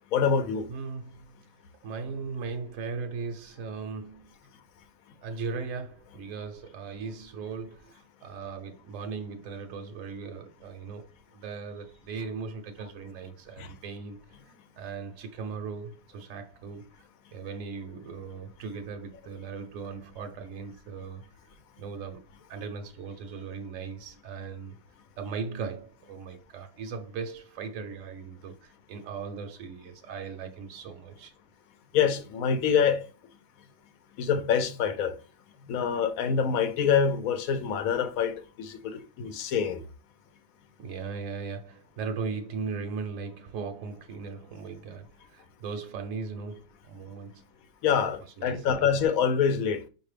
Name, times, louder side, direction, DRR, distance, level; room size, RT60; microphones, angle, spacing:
voice 1, 0.1-0.7 13.6-13.7 31.9-33.1 34.2-35.1 35.7-39.8 47.8-49.8, left 7 dB, 90° left, 1.1 m, -26 dB
voice 2, 0.7-1.4 1.8-4.3 5.2-14.4 14.8-21.4 21.8-22.2 22.5-24.8 25.2-31.3 40.8-47.5 48.2-48.8, right 5 dB, 75° right, 0.9 m, -38 dB
5.2 x 2.6 x 3.2 m
omnidirectional pair, 1.4 m